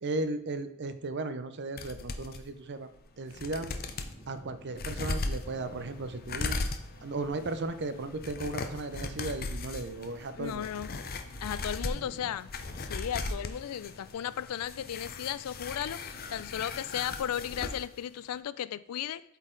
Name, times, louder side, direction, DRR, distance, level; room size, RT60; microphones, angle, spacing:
voice 1, 0.0-2.9 3.2-3.7 4.3-6.6 7.0-10.7 11.9-12.3, right 2 dB, 50° right, 10 dB, 0.6 m, -36 dB
sound 1, 1.8-2.4 2.9-3.0 3.3-4.1 4.7-17.9 18.2-18.3, left 3 dB, 45° left, 0.6 m, -38 dB
sound 2, 2.4-14.7 15.0-15.7, equal, 10° left, 1.9 m, -56 dB
sound 3, 4.6-17.9, right 2 dB, 85° right, 1.5 m, -59 dB
voice 2, 10.4-11.0 11.4-12.5 12.8-19.2, left 10 dB, 90° left, 17 dB, 0.4 m, -35 dB
8.2 x 4.2 x 3.8 m, 0.81 s
head